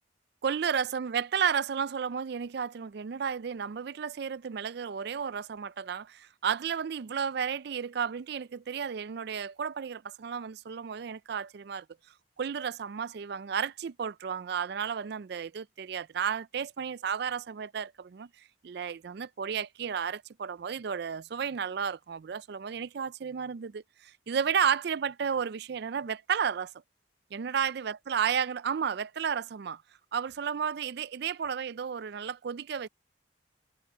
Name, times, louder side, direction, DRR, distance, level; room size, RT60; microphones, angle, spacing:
voice 1, 0.4-11.9 12.4-18.3 18.6-26.7 27.3-29.8 30.1-32.9, right 7 dB, 55° right, 0.4 m, -32 dB
head